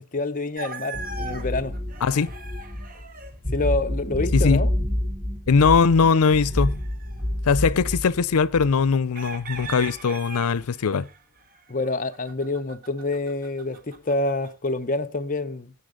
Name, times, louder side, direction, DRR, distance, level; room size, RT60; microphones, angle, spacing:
voice 1, 0.0-1.8 3.5-4.7 11.7-15.7, left 2 dB, 35° left, 0.8 m, -27 dB
sound 1, 0.5-3.4 6.0-7.2 9.1-14.5, right 3 dB, 40° right, 1.5 m, -40 dB
sound 2, 0.9-8.9 9.5-9.9, left 1 dB, 15° right, 2.0 m, -28 dB
voice 2, 4.3-4.6 5.5-6.8 7.5-11.1, left 5 dB, 85° left, 0.5 m, -20 dB
16.5 x 9.5 x 3.8 m
head